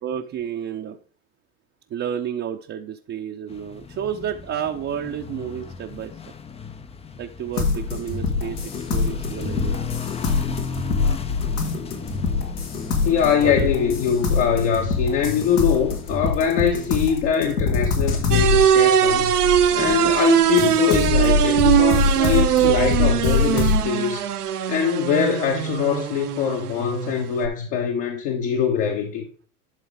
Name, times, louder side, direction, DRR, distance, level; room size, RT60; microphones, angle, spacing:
voice 1, 0.0-1.0 1.9-6.3 7.2-8.6 8.9-9.8 13.4-13.7, right 9 dB, 30° right, 0.8 m, -31 dB
sound 1, 3.5-17.6, left 6 dB, 15° left, 0.6 m, -36 dB
sound 2, 7.6-20.1 20.6-23.8, left 4 dB, 80° left, 2.2 m, -24 dB
voice 2, 13.0-19.3 19.7-29.3, left 7 dB, 55° left, 1.5 m, -23 dB
sound 3, 18.3-27.5, right 10 dB, 80° right, 1.1 m, -21 dB
11.5 x 4.0 x 3.6 m
hypercardioid pair, 95°, 45 cm